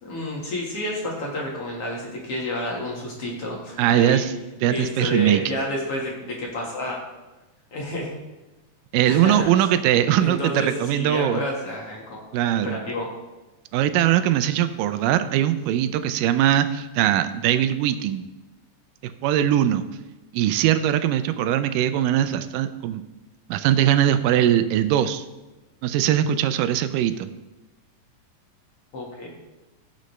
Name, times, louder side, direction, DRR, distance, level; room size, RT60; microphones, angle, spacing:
voice 1, 0.0-4.2 4.7-7.0 7.7-8.2 9.1-9.5 10.2-12.2 12.6-13.1 28.9-29.3, left 1 dB, 50° left, -2 dB, 2.2 m, -30 dB
voice 2, 3.8-4.3 4.6-5.4 8.9-11.4 12.3-12.8 13.7-18.3 19.0-19.8 20.3-23.0 23.5-25.3 25.8-27.3, right 11 dB, 85° right, 11 dB, 2.2 m, -21 dB
15.5 x 6.5 x 3.2 m, 1.1 s
omnidirectional pair, 3.9 m